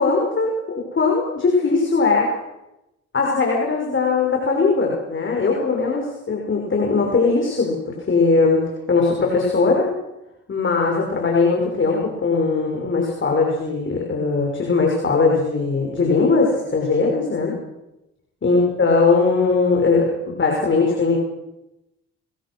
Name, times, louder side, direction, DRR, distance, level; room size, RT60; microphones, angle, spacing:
voice 1, 0.0-2.3 3.1-7.8 8.1-8.6 8.9-9.9 10.5-17.5 18.4-21.2, left 4 dB, 40° left, 0 dB, 6.3 m, -19 dB
27.5 x 22.5 x 6.3 m, 0.93 s
cardioid pair, 90°, 30 cm